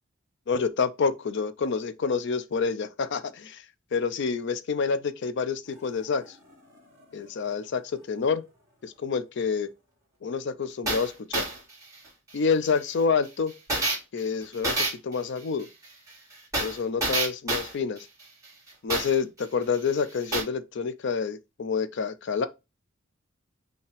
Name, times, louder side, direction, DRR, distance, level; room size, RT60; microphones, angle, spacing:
voice 1, 0.5-3.6 3.9-6.4 7.1-7.8 8.1-8.4 8.8-9.7 10.2-11.5 12.3-13.5 14.1-14.8 15.0-15.7 16.6-18.1 18.8-22.5, left 5 dB, 55° left, 0.4 m, -28 dB
sound 1, 5.8-5.9 6.3-6.4 10.9-19.4 19.7-19.8 20.1-20.4, right 2 dB, 15° right, 2.4 m, -28 dB
5.5 x 2.8 x 3.2 m
head